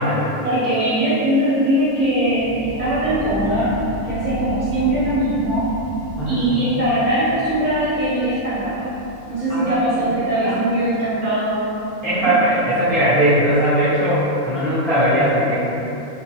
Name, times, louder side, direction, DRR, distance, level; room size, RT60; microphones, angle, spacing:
voice 1, 0.4-3.8 4.0-5.7 6.3-8.9 9.3-11.8 12.1-12.3, right 1 dB, 45° right, -11 dB, 0.7 m, -21 dB
sound 1, 1.9-13.1 13.5-13.6, left 1 dB, 45° left, 0.7 m, -33 dB
voice 2, 6.2-6.7 9.5-9.7 10.4-10.5 12.0-15.6, equal, 5° left, -12 dB, 0.4 m, -19 dB
2.6 x 2.4 x 2.7 m, 2.9 s
omnidirectional pair, 1.3 m